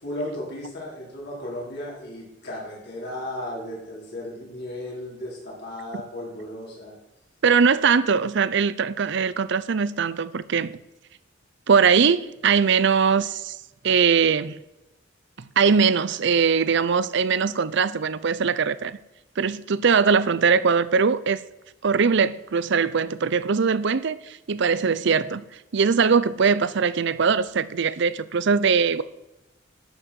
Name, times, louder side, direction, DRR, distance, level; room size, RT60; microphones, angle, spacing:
voice 1, 0.0-7.0, left 1 dB, 60° left, 4.0 m, -35 dB
voice 2, 7.4-10.7 11.7-13.5 13.8-14.6 15.6-19.0 19.4-21.4 21.8-25.4 25.7-29.0, right 5 dB, 65° right, 0.6 m, -21 dB
11.5 x 6.6 x 6.3 m
head